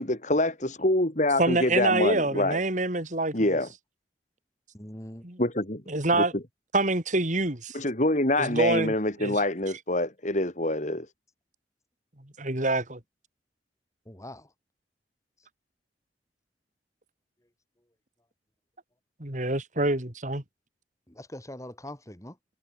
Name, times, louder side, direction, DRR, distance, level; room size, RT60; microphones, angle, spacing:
voice 1, 0.0-2.6 3.3-3.7 5.4-5.8 7.7-11.1, left 1 dB, 45° left, 4.0 m, -26 dB
voice 2, 1.4-3.6 5.2-5.4 5.9-6.3 6.7-7.8 8.4-8.9 9.2-9.4 12.4-13.0 19.2-20.4, right 2 dB, 45° right, 3.5 m, -26 dB
voice 3, 4.7-5.2 14.1-14.4 21.2-22.3, left 1 dB, 20° left, 5.7 m, -42 dB
head